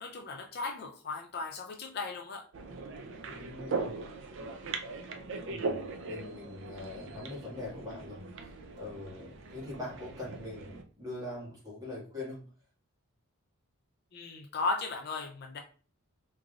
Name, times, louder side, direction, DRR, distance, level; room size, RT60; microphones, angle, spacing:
voice 1, 0.0-2.5 14.1-15.6, left 3 dB, 45° left, 4 dB, 0.4 m, -36 dB
sound 1, 2.5-10.8, right 3 dB, 55° right, 0.4 m, -40 dB
voice 2, 3.1-4.0 5.5-8.5 8.8-12.4, left 2 dB, 15° right, -6 dB, 1.6 m, -43 dB
3.6 x 3.2 x 2.4 m, 0.39 s
head